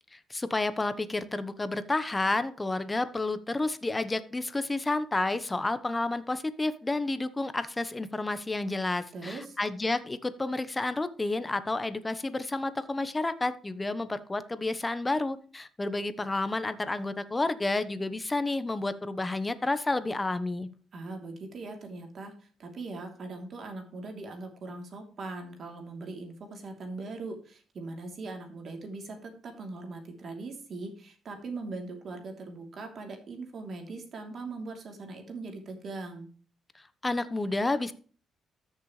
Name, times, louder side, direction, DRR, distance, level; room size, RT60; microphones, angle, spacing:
voice 1, 0.1-20.7 37.0-37.9, left 2 dB, 20° left, 13 dB, 1.0 m, -30 dB
voice 2, 9.1-9.6 20.9-36.3, right 3 dB, 55° right, 4 dB, 3.0 m, -40 dB
13.5 x 6.8 x 3.2 m, 0.42 s
cardioid pair, 90°, 0 cm